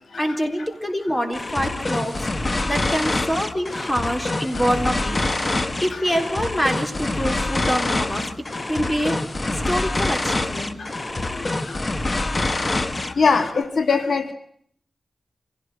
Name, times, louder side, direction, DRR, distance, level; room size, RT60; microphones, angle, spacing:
voice 1, 0.1-2.3 2.6-5.5 5.8-8.2 8.7-9.2 9.5-10.8 11.3-11.4, equal, 15° left, 5 dB, 3.8 m, -25 dB
sound 1, 1.3-13.6, left 2 dB, 30° left, 1.3 m, -26 dB
voice 2, 13.2-14.3, left 4 dB, 75° left, 8 dB, 1.6 m, -20 dB
27.0 x 17.0 x 7.9 m, 0.64 s
wide cardioid pair, 120°, 0 cm